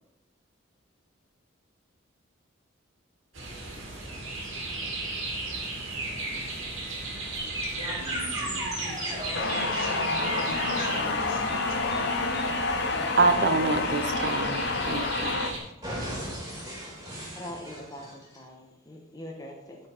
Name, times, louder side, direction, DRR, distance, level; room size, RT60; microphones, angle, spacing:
sound 1, 3.3-15.6, right 2 dB, 85° right, 2.2 m, -36 dB
sound 2, 7.4-15.3 15.8-18.4, equal, 20° right, 2.1 m, -38 dB
voice 1, 7.6-11.8, equal, 75° left, -3 dB, 2.6 m, -41 dB
sound 3, 9.3-15.5, left 3 dB, 55° left, 0.6 m, -29 dB
voice 2, 13.2-15.4, right 3 dB, 55° right, 10 dB, 0.6 m, -26 dB
voice 3, 17.4-19.8, left 1 dB, 20° left, 0 dB, 1.0 m, -42 dB
9.5 x 4.5 x 5.0 m, 1.0 s
head